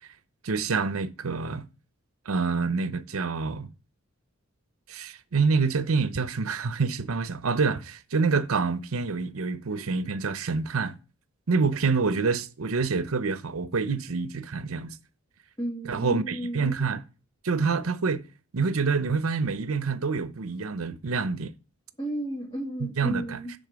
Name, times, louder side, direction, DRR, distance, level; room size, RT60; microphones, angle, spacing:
voice 1, 0.4-1.6 2.3-3.7 4.9-10.9 11.5-14.9 15.9-17.0 17.4-18.2 18.5-21.5 23.0-23.4, right 4 dB, 90° right, 0.7 m, -27 dB
voice 2, 15.6-16.7 22.0-23.5, right 1 dB, 25° left, 2.0 m, -33 dB
10.5 x 3.8 x 5.1 m
head